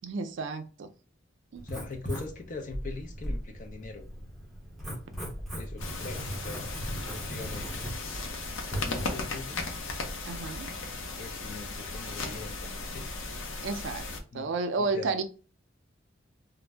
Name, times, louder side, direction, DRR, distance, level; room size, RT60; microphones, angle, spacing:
voice 1, 0.0-0.9 1.5-1.6 10.2-10.7 13.6-14.1 14.3-15.2, right 3 dB, 65° right, 0.4 m, -31 dB
voice 2, 1.6-4.1 5.5-6.7 7.3-7.8 8.8-9.6 10.9-13.1 14.3-15.1, left 3 dB, 40° left, 0.5 m, -42 dB
Writing, 1.6-9.2, equal, ahead, 0.7 m, -38 dB
sound 1, 5.8-14.2, left 3 dB, 85° left, 0.6 m, -36 dB
2.5 x 2.0 x 3.2 m
head